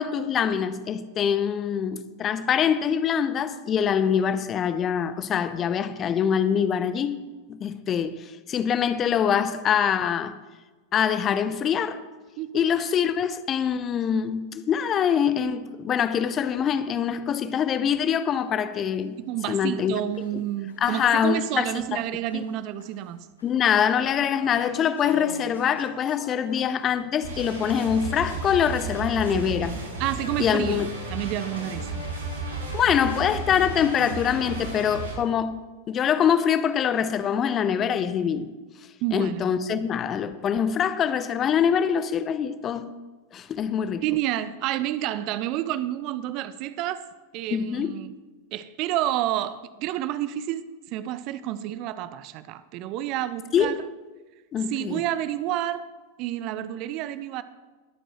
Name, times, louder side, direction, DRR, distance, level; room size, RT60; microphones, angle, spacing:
voice 1, 0.0-7.2 7.5-10.4 10.9-12.0 12.5-19.2 19.5-20.0 20.8-22.0 22.3-22.4 23.4-29.7 30.4-30.9 32.7-35.6 35.9-38.5 39.1-42.9 43.3-44.0 47.5-48.0 53.5-53.7 54.5-55.0, left 8 dB, 30° left, 0.7 m, -24 dB
sound 1, 16.2-16.3 16.7-16.8 17.3-17.4 17.8-17.9 18.4-18.5 19.0-19.1 19.6-22.0 22.3-26.9 27.3-29.3 30.1-33.0, left 3 dB, 80° left, 2.2 m, -46 dB
voice 2, 19.3-23.3 29.3-29.5 30.0-30.8 31.1-32.0 39.0-39.5 44.0-47.0 47.3-48.1 48.5-53.8 54.7-55.9 56.2-57.4, right 13 dB, 40° right, 0.6 m, -29 dB
sound 2, 27.2-35.1, right 2 dB, 75° right, 4.8 m, -33 dB
21.5 x 9.0 x 3.0 m
figure-of-eight pair, 90°, 0 cm